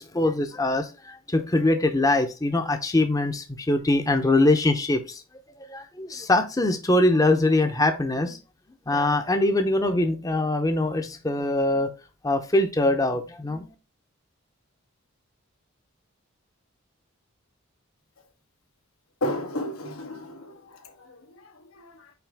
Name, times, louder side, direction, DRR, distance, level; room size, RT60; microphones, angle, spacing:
voice 1, 0.0-5.2 5.7-8.4 8.9-11.9 12.2-13.7, left 2 dB, 15° left, 0.7 m, -23 dB
voice 2, 19.2-22.1, left 1 dB, 85° left, 1.3 m, -34 dB
5.8 x 4.8 x 3.5 m
head